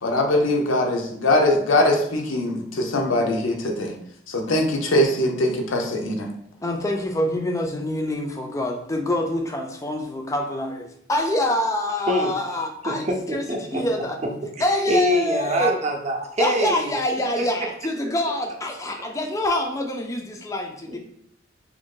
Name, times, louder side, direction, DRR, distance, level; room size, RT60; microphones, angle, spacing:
voice 1, 0.0-3.9 4.3-6.3, left 1 dB, 90° left, 2 dB, 0.7 m, -21 dB
voice 2, 6.6-14.2 14.6-15.8 16.4-21.0, left 1 dB, 15° left, 3 dB, 0.3 m, -26 dB
voice 3, 12.9-13.8 14.2-16.9 17.6-17.7 20.9-21.0, equal, 35° right, 1 dB, 0.5 m, -25 dB
3.0 x 2.5 x 3.6 m, 0.69 s
head